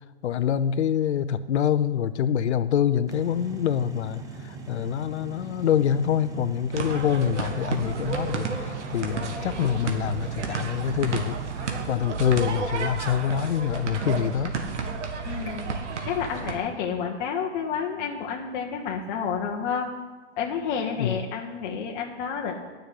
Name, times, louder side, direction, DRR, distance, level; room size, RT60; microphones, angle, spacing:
voice 1, 0.2-11.4 11.9-14.5 21.0-21.2, left 9 dB, 70° left, 14 dB, 0.8 m, -25 dB
sound 1, 3.1-11.9, right 4 dB, 10° right, 0.7 m, -41 dB
sound 2, 6.7-16.6, right 4 dB, 80° right, 2.0 m, -31 dB
voice 2, 15.2-15.7 16.1-19.9 20.4-22.6, left 6 dB, 40° left, 0 dB, 1.4 m, -30 dB
10.5 x 6.5 x 8.5 m, 1.3 s
hypercardioid pair, 145°, 35 cm